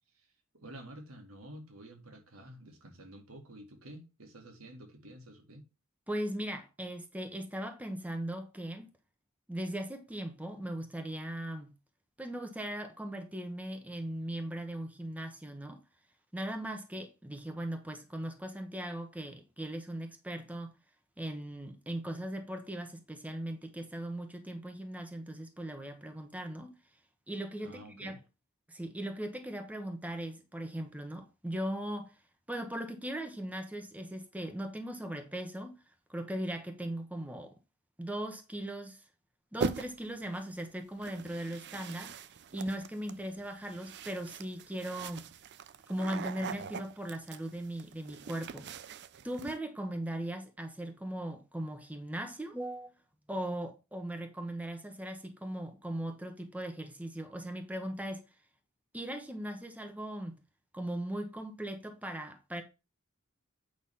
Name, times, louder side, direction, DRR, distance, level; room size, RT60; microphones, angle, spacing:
voice 1, 0.2-5.7 27.6-28.2, right 1 dB, 75° right, 2.1 m, -50 dB
voice 2, 6.1-8.9 9.5-11.7 12.2-15.8 16.3-20.7 21.2-26.8 27.3-28.2 28.7-32.2 32.5-35.8 36.1-37.5 38.0-39.0 39.5-42.1 42.5-45.2 45.9-48.7 49.2-52.9 53.3-58.2 58.9-60.4 60.7-62.6, right 1 dB, 5° right, 1.1 m, -39 dB
sound 1, 39.6-40.2 41.0-49.6, right 5 dB, 55° right, 0.5 m, -42 dB
8.6 x 3.9 x 5.6 m
head